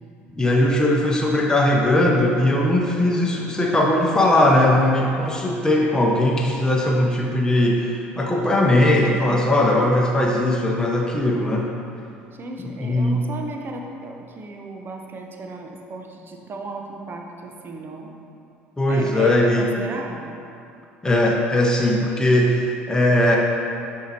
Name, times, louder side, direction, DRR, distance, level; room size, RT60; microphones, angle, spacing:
voice 1, 0.4-11.7 12.8-13.2 18.8-19.7 21.0-23.4, left 1 dB, 10° left, -2 dB, 0.9 m, -19 dB
voice 2, 8.8-9.6 12.3-18.1 18.9-20.4, right 2 dB, 35° right, 2 dB, 0.8 m, -35 dB
10.5 x 4.7 x 2.9 m, 2.6 s
figure-of-eight pair, 60°, 6 cm